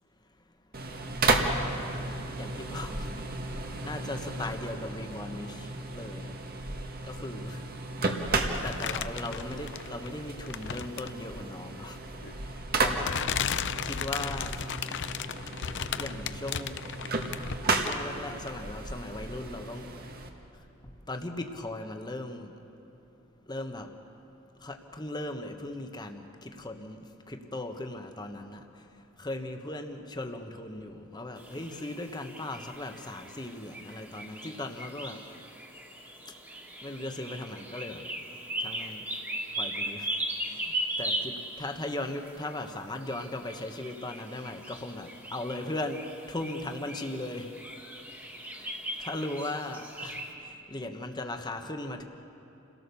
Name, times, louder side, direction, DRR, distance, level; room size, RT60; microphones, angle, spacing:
sound 1, 0.7-20.3, right 2 dB, 50° right, 1.7 m, -34 dB
voice 1, 1.4-3.3 3.8-6.4 7.0-7.7 8.6-12.0 12.8-13.1 13.8-14.5 16.0-16.7 17.8-19.9 21.1-22.5 23.5-23.9 24.6-27.0 27.3-28.6 29.2-35.2 36.8-38.1 38.6-39.1 39.6-40.1 40.5-40.7 41.0-47.5 48.6-48.7 49.0-50.2 50.7-52.0, left 1 dB, 20° left, 5 dB, 1.3 m, -38 dB
sound 2, 8.5-10.1 10.5-11.2 12.2-12.3 13.0-18.1 18.5-18.6, left 8 dB, 60° left, 0.6 m, -34 dB
sound 3, 31.4-50.3, right 1 dB, 10° right, 2.1 m, -39 dB
28.0 x 17.5 x 7.0 m, 3.0 s
head